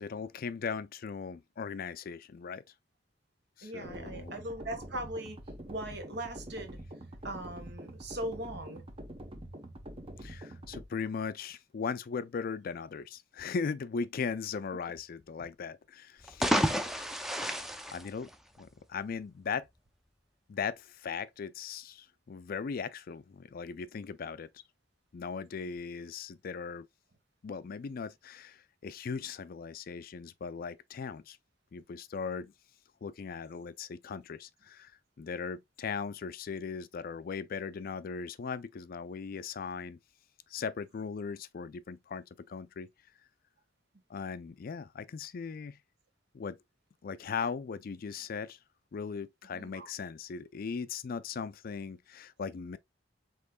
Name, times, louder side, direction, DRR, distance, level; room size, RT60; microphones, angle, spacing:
voice 1, 0.0-2.6 3.6-4.4 10.2-16.5 17.9-18.3 18.6-19.7 20.5-24.5 25.1-26.9 27.4-31.4 31.7-32.5 33.0-34.9 35.2-40.0 40.5-42.9 44.1-45.8 46.3-46.6 47.0-48.6 48.9-52.8, left 5 dB, 50° left, 0.4 m, -38 dB
voice 2, 3.6-5.4 5.7-6.8 7.2-8.8 49.5-49.9, right 1 dB, 65° right, 1.4 m, -39 dB
sound 1, 3.8-10.8, right 1 dB, 30° right, 0.9 m, -45 dB
sound 2, 16.2-18.8, equal, ahead, 0.5 m, -31 dB
5.3 x 3.7 x 2.2 m
head